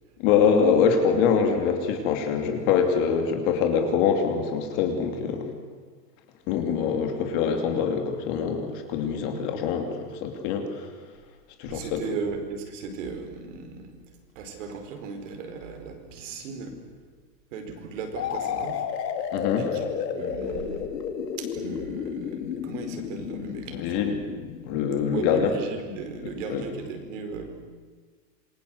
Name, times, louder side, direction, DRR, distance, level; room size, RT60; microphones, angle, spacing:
voice 1, 0.2-5.5 6.5-10.9 11.6-12.0 19.3-19.6 23.7-24.2 24.7-25.5 26.2-26.6, left 6 dB, 30° left, 4 dB, 2.8 m, -24 dB
voice 2, 11.7-13.9 14.3-16.7 17.5-18.9 19.6-20.9 21.4-24.1 25.1-27.5, right 4 dB, 45° right, 5 dB, 4.9 m, -36 dB
sound 1, 18.2-25.8, left 7 dB, 70° left, 3.3 m, -32 dB
27.5 x 23.0 x 8.0 m, 1.5 s
supercardioid pair, 175°, 50 cm